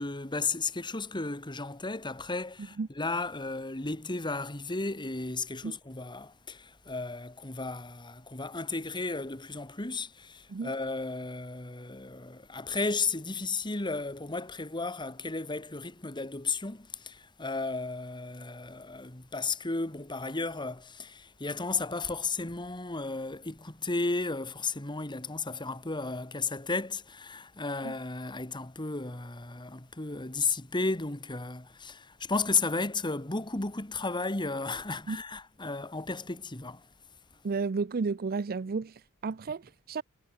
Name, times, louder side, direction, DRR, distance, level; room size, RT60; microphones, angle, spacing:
voice 1, 0.0-36.9, left 3 dB, 20° left, 1.7 m, -34 dB
voice 2, 37.4-40.0, right 4 dB, 45° right, 0.5 m, -32 dB
head